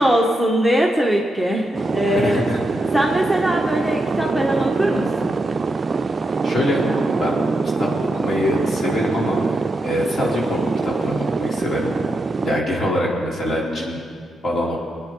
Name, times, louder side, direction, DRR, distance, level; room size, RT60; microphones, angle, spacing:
voice 1, 0.0-2.4 2.9-5.4, right 1 dB, 5° left, 0 dB, 1.5 m, -20 dB
sound 1, 1.7-12.6, right 4 dB, 40° right, 0.4 m, -24 dB
voice 2, 2.1-2.6 6.4-6.9 7.1-7.4 7.8-9.4 9.8-11.9 12.4-14.0 14.4-14.8, left 1 dB, 50° left, -3 dB, 3.6 m, -24 dB
21.5 x 9.7 x 4.0 m, 2.1 s
cardioid pair, 65°, 0 cm